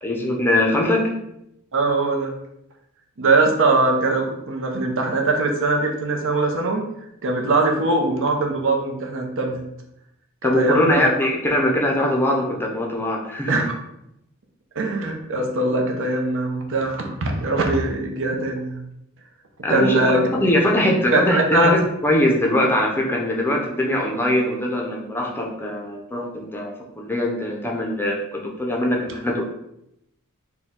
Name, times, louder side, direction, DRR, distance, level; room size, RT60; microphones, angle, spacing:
voice 1, 0.0-1.1 10.4-13.7 19.6-29.4, left 1 dB, 10° left, -1 dB, 0.6 m, -22 dB
voice 2, 1.7-2.3 3.2-6.8 7.2-9.6 10.4-11.1 13.5-13.7 14.7-18.8 19.7-20.2 21.1-21.7, right 2 dB, 60° right, 2 dB, 0.7 m, -21 dB
4.3 x 2.2 x 3.6 m, 0.81 s
head